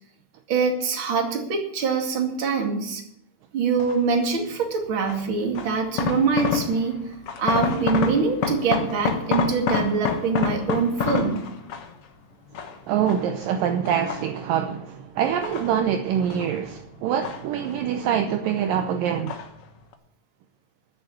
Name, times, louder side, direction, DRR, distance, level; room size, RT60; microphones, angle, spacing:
voice 1, 0.5-3.0 3.5-7.0 7.4-11.4, right 5 dB, 35° right, 2.6 m, -24 dB
sound 1, 3.8-4.2 5.1-7.0 7.3-12.0 12.5-13.4 13.8-14.7 15.2-16.5 16.8-18.0 18.2-18.8 19.3-19.6 19.9-20.0, left 6 dB, 65° left, 1.4 m, -28 dB
voice 2, 12.9-19.4, right 9 dB, 75° right, 2.3 m, -25 dB
13.5 x 6.9 x 9.1 m
omnidirectional pair, 4.4 m